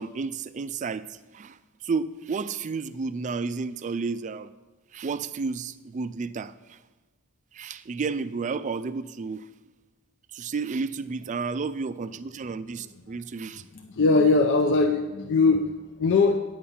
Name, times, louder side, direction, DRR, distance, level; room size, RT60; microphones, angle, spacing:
voice 1, 0.0-1.6 1.8-4.5 4.9-6.8 7.5-9.5 10.3-13.6, right 4 dB, 35° right, 14 dB, 0.3 m, -32 dB
voice 2, 13.7-16.4, left 3 dB, 55° left, 5 dB, 0.6 m, -21 dB
9.3 x 8.5 x 5.6 m, 1.2 s
head